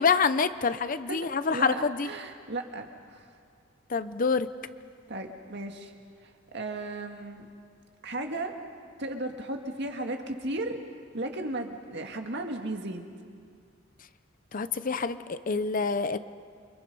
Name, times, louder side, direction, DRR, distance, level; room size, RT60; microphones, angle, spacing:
voice 1, 0.0-2.1 3.9-4.5 14.5-16.2, left 5 dB, 45° left, 13 dB, 0.7 m, -26 dB
voice 2, 1.1-3.2 5.1-5.9 6.5-7.5 8.0-8.5 9.0-10.8 11.1-13.1, right 2 dB, 60° right, 4 dB, 2.0 m, -35 dB
29.5 x 24.5 x 5.5 m, 2.2 s
head